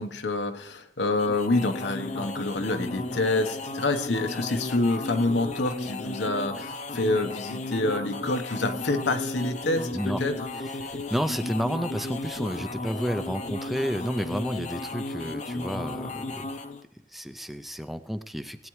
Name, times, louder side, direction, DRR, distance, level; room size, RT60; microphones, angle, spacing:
voice 1, 0.0-10.3, left 2 dB, 85° left, 6 dB, 1.0 m, -27 dB
sound 1, 1.0-16.8, left 2 dB, 40° left, 0.6 m, -34 dB
voice 2, 10.6-16.5 17.1-18.7, equal, ahead, 10 dB, 0.4 m, -31 dB
19.0 x 8.9 x 3.1 m, 0.77 s
head